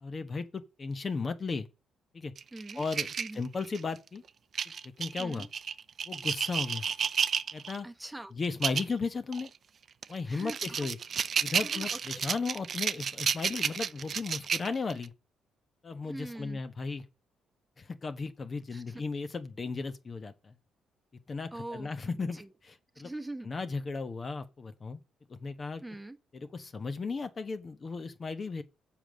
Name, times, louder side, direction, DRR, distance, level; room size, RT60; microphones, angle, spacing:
voice 1, 0.0-1.7 2.1-2.3 2.7-4.2 5.0-5.5 6.1-6.9 7.5-7.9 8.3-9.5 10.1-11.0 11.4-15.1 15.8-17.0 17.8-20.5 21.3-23.1 23.4-25.0 25.4-25.8 26.3-28.6, left 4 dB, 35° left, 1.1 m, -35 dB
sound 1, 2.4-4.0 4.5-7.8 8.4-8.9 9.3-9.5 10.0-15.1, right 7 dB, 50° right, 0.6 m, -31 dB
voice 2, 2.5-2.8 3.2-3.4 5.2-5.5 7.8-8.3 10.3-10.8 11.6-12.0 16.0-16.6 18.7-19.0 21.5-22.5 23.0-23.5 25.8-26.2, right 2 dB, 10° right, 1.1 m, -43 dB
7.4 x 5.1 x 6.3 m
cardioid pair, 90°, 0 cm